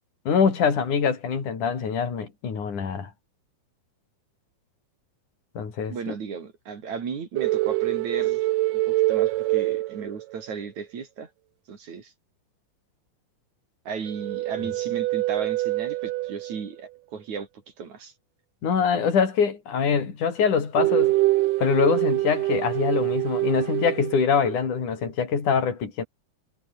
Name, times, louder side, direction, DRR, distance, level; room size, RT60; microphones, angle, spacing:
voice 1, 0.3-3.1 5.6-6.1 18.6-21.2 21.6-26.0, left 6 dB, 55° left, 5.7 m, -24 dB
voice 2, 5.9-8.5 8.9-11.3 11.7-12.1 13.9-17.5 17.8-18.1, right 6 dB, 50° right, 4.2 m, -35 dB
sound 1, 7.4-10.5 14.1-16.7 20.8-24.6, right 18 dB, 80° right, 2.0 m, -25 dB
omnidirectional pair, 4.3 m